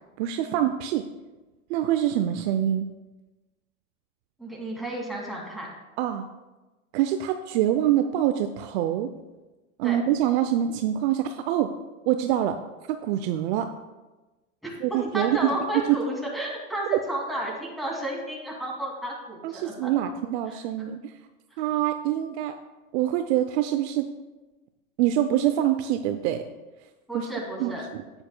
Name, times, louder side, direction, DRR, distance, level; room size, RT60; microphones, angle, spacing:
voice 1, 0.2-1.1 1.7-2.9 6.0-6.3 6.9-9.1 9.8-11.7 12.1-12.6 12.9-13.7 14.8-15.5 15.9-16.0 19.4-21.1 21.6-22.5 22.9-24.1 25.0-26.4 27.1-27.3 27.6-28.0, right 11 dB, 55° right, 8 dB, 0.6 m, -25 dB
voice 2, 4.4-5.7 9.8-10.0 14.6-14.7 15.1-19.9 20.5-20.6 27.1-27.8, right 1 dB, ahead, -4 dB, 2.3 m, -32 dB
10.0 x 8.8 x 2.2 m, 1.1 s
supercardioid pair, 115°, 39 cm